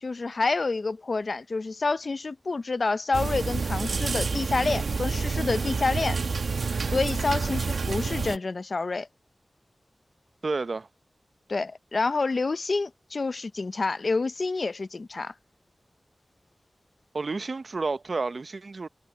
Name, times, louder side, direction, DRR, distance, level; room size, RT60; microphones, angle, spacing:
voice 1, 0.0-6.2 6.9-9.1 11.5-15.3, left 3 dB, 60° left, 0.6 m, -28 dB
sound 1, 3.1-8.4, right 4 dB, 85° right, 1.1 m, -28 dB
voice 2, 10.4-10.9 17.1-18.9, right 3 dB, 65° right, 0.8 m, -30 dB
wide cardioid pair, 60°, 0 cm